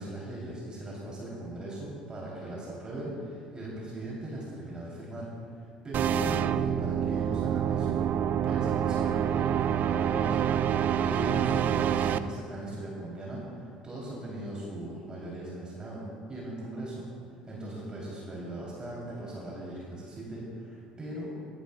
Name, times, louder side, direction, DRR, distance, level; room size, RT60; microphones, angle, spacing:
voice 1, 0.0-8.0 8.4-10.4 11.0-16.0 16.3-17.0 17.5-21.3, right 1 dB, 20° right, -5 dB, 3.1 m, -39 dB
sound 1, 5.9-12.2, right 9 dB, 45° right, 0.4 m, -27 dB
21.5 x 11.0 x 2.3 m, 2.3 s
figure-of-eight pair, 65°, 4 cm